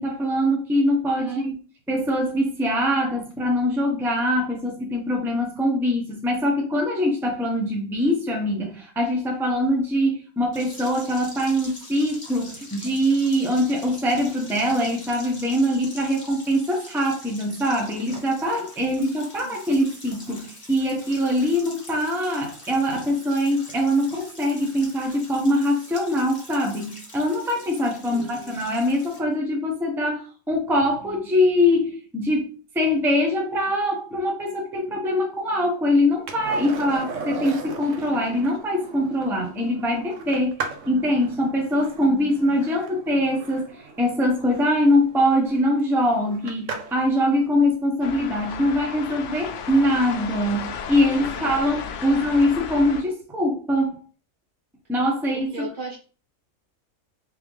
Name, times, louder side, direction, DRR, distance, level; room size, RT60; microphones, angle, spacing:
voice 1, 0.0-1.5 1.9-32.5 32.7-40.5 40.9-54.0 54.9-55.5, left 1 dB, ahead, 1 dB, 0.7 m, -23 dB
voice 2, 1.1-1.4 19.4-19.9 28.1-28.7 51.0-51.6 52.0-52.5 55.3-56.0, right 4 dB, 40° right, -2 dB, 1.0 m, -38 dB
sound 1, 10.5-29.2, left 1 dB, 25° left, 1.1 m, -44 dB
Skateboard, 36.3-47.1 49.7-49.8, right 4 dB, 70° right, 1.0 m, -38 dB
sound 2, 48.0-53.0, left 7 dB, 70° left, 0.9 m, -34 dB
3.5 x 3.4 x 3.2 m, 0.39 s
omnidirectional pair, 1.4 m